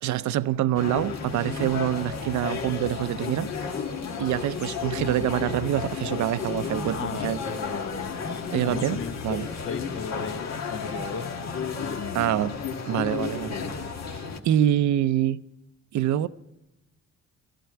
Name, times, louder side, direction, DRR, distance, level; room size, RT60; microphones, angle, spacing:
voice 1, 0.0-3.5 4.2-7.4 8.5-9.5 12.1-12.5 12.9-13.6 14.4-15.4 15.9-16.3, right 12 dB, 70° right, 0.6 m, -25 dB
sound 1, 0.7-14.4, left 5 dB, 60° left, 1.5 m, -32 dB
voice 2, 7.0-8.1 8.6-12.3, left 7 dB, 45° left, 0.7 m, -36 dB
13.5 x 12.5 x 5.8 m
cardioid pair, 90°, 30 cm